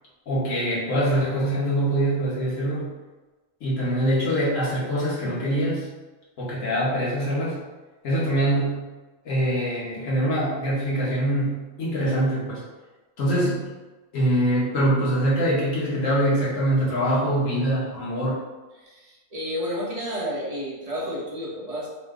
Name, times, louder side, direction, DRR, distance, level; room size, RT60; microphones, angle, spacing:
voice 1, 0.3-2.9 3.6-5.9 6.4-7.6 8.0-8.9 9.2-12.6 13.2-13.7 14.1-18.4, right 1 dB, 80° left, -7 dB, 1.4 m, -24 dB
voice 2, 18.7-21.9, equal, 30° right, -6 dB, 1.1 m, -31 dB
4.3 x 2.2 x 3.6 m, 1.2 s
omnidirectional pair, 1.3 m